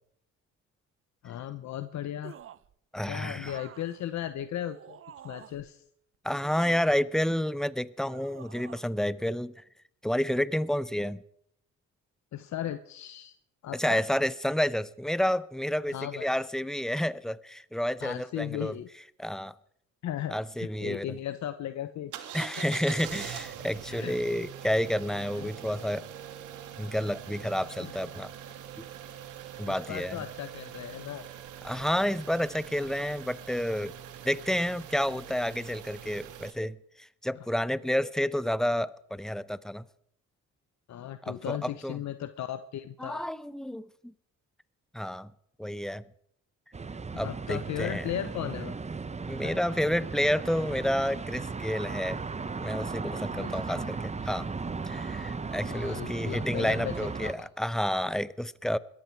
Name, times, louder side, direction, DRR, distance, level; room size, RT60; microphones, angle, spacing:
voice 1, 1.2-2.4 3.1-5.0 5.2-5.8 12.3-13.3 13.6-14.0 15.9-16.3 18.0-18.9 20.0-22.1 22.6-22.7 23.9-24.1 25.4-25.5 27.8-27.9 29.7-31.2 40.9-43.3 47.1-48.8 49.4-49.6 53.3-53.9 55.6-56.9 57.2-57.5 58.0-58.1, left 11 dB, 70° left, 0.9 m, -36 dB
sound 1, 2.2-2.7 3.4-5.7 6.4-7.5 8.1-8.9 9.2-9.4, right 10 dB, 45° right, 0.6 m, -50 dB
voice 2, 2.9-3.6 6.2-9.5 10.0-11.2 13.7-18.8 19.2-19.5 20.3-21.2 22.3-26.1 26.8-28.3 28.8-28.9 29.6-30.2 31.6-33.9 34.2-39.8 41.2-42.0 43.0-44.1 44.9-45.3 45.6-46.0 47.2-48.0 49.2-52.2 52.6-54.5 54.9-58.8, equal, ahead, 0.7 m, -30 dB
sound 2, 22.1-36.5, right 10 dB, 85° right, 1.8 m, -43 dB
sound 3, 46.7-57.3, right 4 dB, 20° right, 1.0 m, -36 dB
21.0 x 14.0 x 4.7 m
cardioid pair, 90°, 30 cm